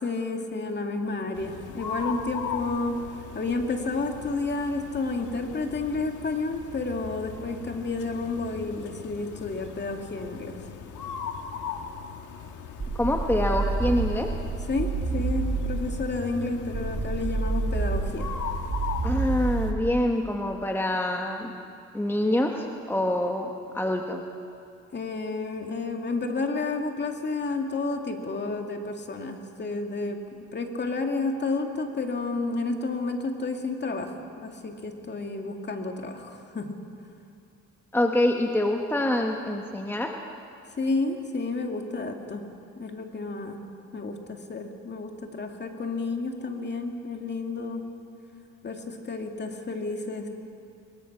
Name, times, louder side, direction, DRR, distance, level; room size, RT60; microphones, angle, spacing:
voice 1, 0.0-10.6 14.7-18.3 24.9-30.2 30.5-36.8 40.8-42.5 42.8-43.6 43.9-47.9 48.6-50.3, left 3 dB, 35° left, 4 dB, 2.3 m, -31 dB
sound 1, 1.3-19.7, left 7 dB, 80° left, 1.7 m, -38 dB
sound 2, 12.8-16.1 16.7-20.1, right 4 dB, 35° right, 2.4 m, -29 dB
voice 2, 12.9-14.3 19.0-21.6 21.9-24.2 37.9-40.1, left 1 dB, 5° left, 2 dB, 1.3 m, -26 dB
22.5 x 21.5 x 6.0 m, 2.4 s
cardioid pair, 90°, 30 cm